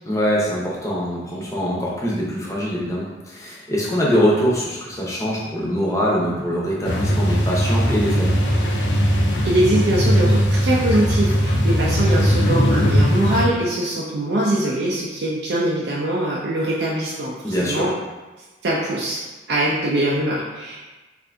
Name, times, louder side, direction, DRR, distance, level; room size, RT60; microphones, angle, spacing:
voice 1, 0.1-8.4 17.4-17.9, equal, 15° left, -5 dB, 0.6 m, -23 dB
sound 1, 6.8-13.4, equal, 85° left, 0.5 m, -19 dB
voice 2, 9.4-17.3 17.6-17.9 18.6-19.2 19.5-20.8, right 1 dB, 65° right, -5 dB, 0.4 m, -22 dB
2.6 x 2.5 x 3.4 m, 1.2 s
head